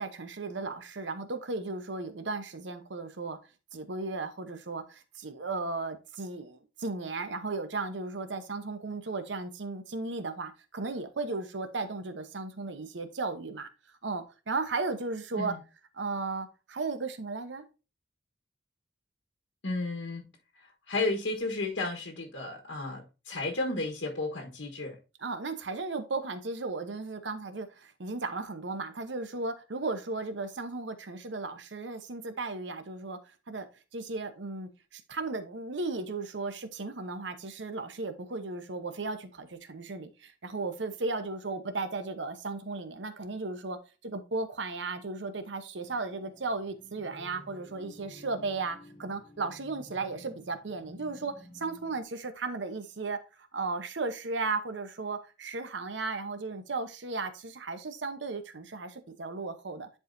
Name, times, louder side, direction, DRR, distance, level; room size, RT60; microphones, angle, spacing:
voice 1, 0.0-3.4 3.7-13.7 14.0-15.5 15.9-17.6 25.2-33.7 33.9-59.9, right 3 dB, 75° right, 0.9 m, -35 dB
voice 2, 19.6-20.3 20.5-25.0, left 2 dB, 85° left, 1.3 m, -33 dB
sound 1, 45.8-52.0, equal, 55° left, 2.4 m, -53 dB
10.5 x 4.8 x 2.7 m
head